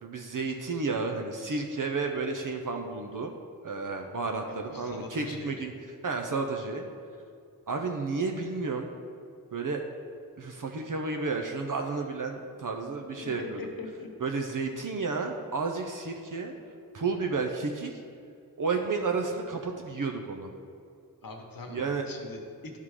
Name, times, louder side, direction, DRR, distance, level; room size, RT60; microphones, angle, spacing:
voice 1, 0.0-3.3 3.6-5.7 6.0-6.9 7.7-8.9 9.5-9.9 10.4-13.6 14.2-16.5 16.9-18.0 18.6-20.5 21.7-22.1, right 4 dB, 60° right, 3 dB, 0.6 m, -32 dB
voice 2, 4.5-5.5 13.2-14.1 21.2-22.8, left 3 dB, 65° left, 2 dB, 1.0 m, -42 dB
11.0 x 3.7 x 4.8 m, 2.4 s
wide cardioid pair, 70°, 37 cm